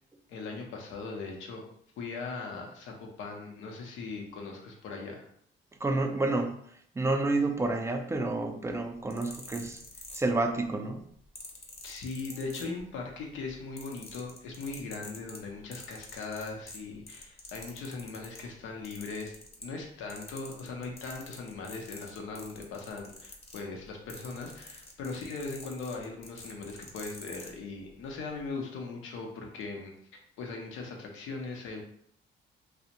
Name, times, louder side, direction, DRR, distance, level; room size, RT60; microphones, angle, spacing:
voice 1, 0.3-1.6 2.0-5.3 9.6-9.7 11.8-19.3 19.6-29.9 30.4-31.8, left 3 dB, 90° left, 1 dB, 0.6 m, -39 dB
voice 2, 5.8-6.6 6.9-9.8 10.1-11.0, right 2 dB, 15° right, 5 dB, 0.3 m, -29 dB
sound 1, 8.9-10.6 11.3-13.1 13.4-18.5 18.8-19.8 20.1-27.5 28.3-28.4, left 2 dB, 30° left, 0.6 m, -47 dB
2.4 x 2.0 x 2.8 m, 0.66 s
cardioid pair, 90°, 20 cm